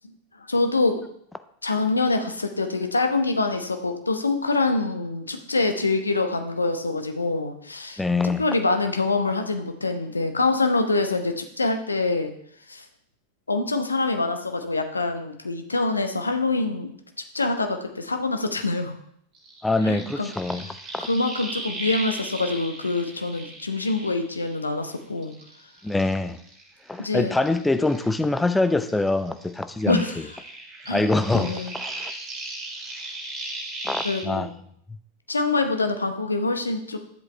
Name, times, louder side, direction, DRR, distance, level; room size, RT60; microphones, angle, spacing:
voice 1, 0.4-1.0 1.6-8.0 8.4-12.3 12.7-12.8 13.5-16.9 17.3-19.0 19.8-20.3 21.0-25.3 27.0-27.3 29.9-30.4 30.9-31.1 31.3-31.7 34.0-34.5 35.3-37.0, left 3 dB, 80° left, 6 dB, 1.0 m, -25 dB
voice 2, 8.0-8.4 19.6-20.7 20.9-21.0 25.8-26.4 26.9-30.0 30.9-32.1 33.8-34.5, left 2 dB, 5° left, 11 dB, 0.6 m, -24 dB
sound 1, 19.3-24.9 25.2-28.6 28.8-34.2, right 2 dB, 25° right, 2.9 m, -37 dB
11.5 x 7.6 x 3.3 m, 0.69 s
figure-of-eight pair, 90°, 0 cm